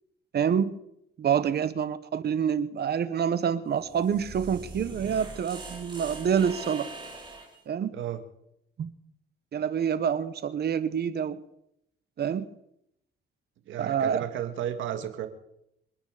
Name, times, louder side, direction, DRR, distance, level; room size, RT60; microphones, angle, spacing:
voice 1, 0.3-0.8 1.2-6.9 7.7-7.9 8.8-8.9 9.5-11.4 12.2-12.5 13.8-14.2, right 8 dB, 55° right, 14 dB, 1.2 m, -27 dB
sound 1, 3.7-7.6, right 2 dB, 25° right, 4.8 m, -42 dB
voice 2, 13.7-15.3, right 10 dB, 80° right, 8 dB, 1.8 m, -33 dB
25.5 x 9.4 x 5.0 m, 0.79 s
cardioid pair, 90°, 20 cm